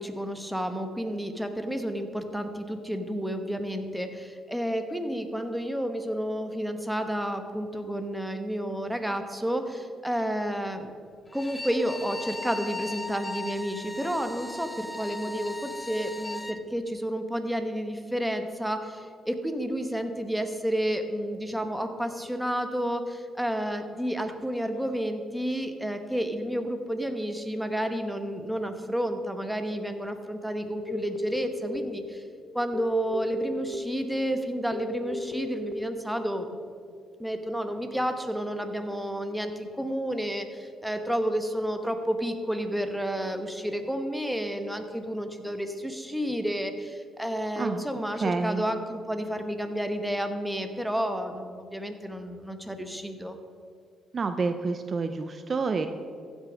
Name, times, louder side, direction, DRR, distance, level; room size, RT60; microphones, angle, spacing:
voice 1, 0.0-10.9 11.3-32.2 32.5-36.5 37.2-53.4, equal, 5° right, 6 dB, 1.1 m, -31 dB
Bowed string instrument, 11.3-16.6, left 2 dB, 15° left, 0.6 m, -38 dB
sound 1, 30.9-31.8 32.7-33.7 34.7-35.7, left 4 dB, 80° left, 0.9 m, -36 dB
voice 2, 48.2-48.6 54.1-55.9, right 4 dB, 40° right, 9 dB, 0.5 m, -28 dB
15.0 x 6.2 x 5.1 m, 2.2 s
cardioid pair, 90°, 0 cm